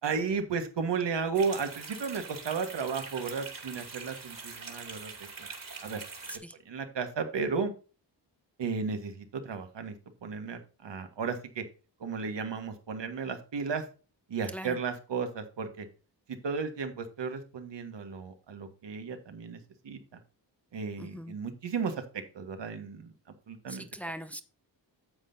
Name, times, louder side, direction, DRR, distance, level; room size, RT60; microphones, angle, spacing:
voice 1, 0.0-5.1 5.4-5.5 5.8-6.0 6.6-7.7 8.6-9.9 10.2-11.6 12.0-13.8 14.3-15.9 16.3-19.6 19.8-20.2 20.7-23.1 23.5-23.9, right 5 dB, 70° right, 7 dB, 1.6 m, -34 dB
sound 1, 1.3-6.4, right 4 dB, 50° right, 2.7 m, -43 dB
voice 2, 21.0-21.4 23.7-24.4, right 1 dB, 5° left, 9 dB, 0.8 m, -41 dB
9.6 x 7.6 x 2.7 m, 0.34 s
cardioid pair, 70°, 44 cm